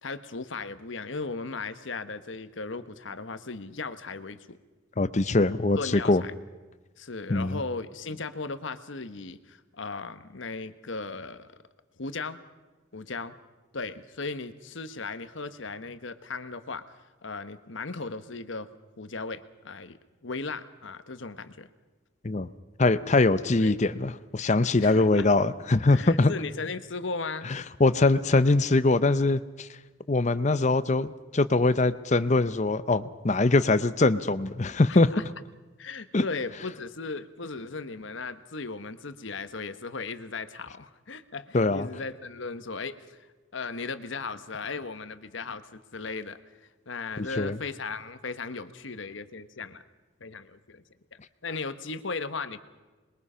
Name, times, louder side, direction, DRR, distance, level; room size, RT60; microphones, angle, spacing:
voice 1, 0.0-4.6 5.8-6.3 7.0-11.6 12.0-12.4 12.9-13.4 13.7-16.9 17.2-18.7 19.0-21.7 23.6-23.7 24.8-25.3 25.9-27.5 34.9-35.2 35.8-43.2 43.5-46.4 46.9-49.8 50.2-50.8 51.1-52.6, left 4 dB, 70° left, 11 dB, 1.1 m, -37 dB
voice 2, 5.0-6.2 7.3-7.6 22.2-22.5 22.8-26.3 27.5-29.7 30.1-35.1 36.1-36.2 41.5-41.9 47.4-47.6, left 2 dB, 35° left, 14 dB, 0.7 m, -23 dB
26.5 x 22.0 x 5.6 m, 1.2 s
head